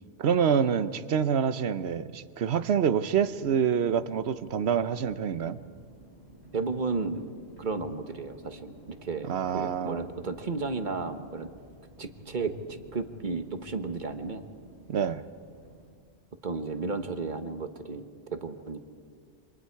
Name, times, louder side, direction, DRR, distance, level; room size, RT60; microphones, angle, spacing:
voice 1, 0.2-5.6 9.3-10.1 14.9-15.2, right 7 dB, 65° right, 13 dB, 1.0 m, -26 dB
sound 1, 3.0-15.9, right 1 dB, 65° left, 8.0 m, -52 dB
voice 2, 6.5-7.2 7.6-8.7 9.0-9.3 9.5-11.5 12.0-14.4 16.4-18.0 18.3-18.8, right 4 dB, 45° right, 8 dB, 1.3 m, -33 dB
28.0 x 25.5 x 4.6 m, 2.1 s
omnidirectional pair, 1.2 m